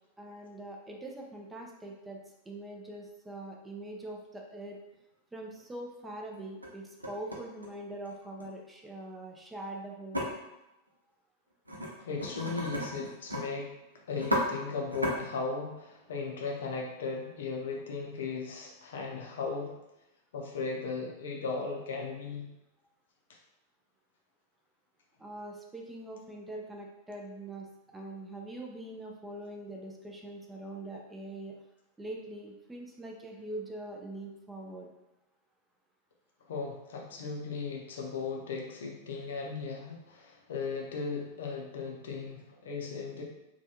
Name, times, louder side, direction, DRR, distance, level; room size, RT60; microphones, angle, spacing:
voice 1, 0.2-2.2 2.5-4.8 5.3-10.3 25.2-31.5 32.0-34.9, right 1 dB, 10° right, 0 dB, 0.4 m, -43 dB
sound 1, 4.9-5.0 5.5-5.6 6.3-6.7 7.0-8.4 10.1-10.2 11.7-11.9 12.2-13.4 13.7-13.8 14.1-14.4 14.9-15.1, equal, 85° right, 0.5 m, -33 dB
voice 2, 12.0-13.7 14.1-19.7 20.3-22.5 36.5-43.2, left 4 dB, 60° left, 0 dB, 0.5 m, -37 dB
3.2 x 2.2 x 2.8 m, 0.91 s
figure-of-eight pair, 90°, 0 cm